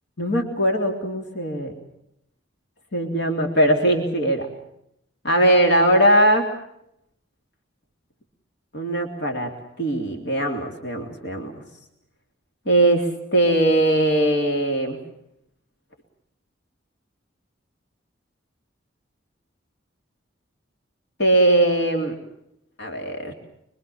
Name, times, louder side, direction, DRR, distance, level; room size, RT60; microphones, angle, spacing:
voice 1, 0.2-1.7 2.9-4.5 5.2-6.5 8.7-9.5 9.8-11.5 12.6-15.0 21.2-22.1 22.8-23.3, right 1 dB, 65° left, 3 dB, 3.4 m, -20 dB
25.0 x 24.5 x 7.2 m, 0.79 s
head